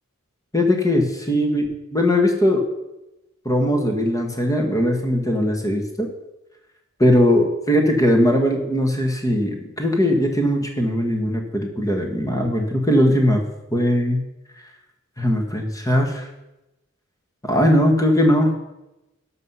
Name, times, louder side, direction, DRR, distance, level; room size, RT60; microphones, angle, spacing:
voice 1, 0.5-1.7 1.9-2.6 3.4-6.1 7.0-13.4 13.7-14.2 15.2-16.2 17.4-18.5, equal, 15° left, 3 dB, 1.5 m, -19 dB
12.0 x 6.4 x 5.6 m, 0.95 s
head